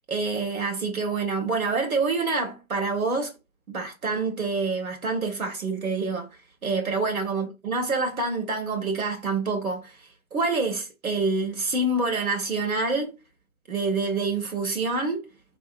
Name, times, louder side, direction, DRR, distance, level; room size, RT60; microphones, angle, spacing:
voice 1, 0.1-3.3 3.7-6.3 6.6-10.0 10.3-13.1 13.7-15.2, right 3 dB, 90° right, 1.7 m, -27 dB
4.4 x 3.4 x 2.3 m
hypercardioid pair, 165°, 41 cm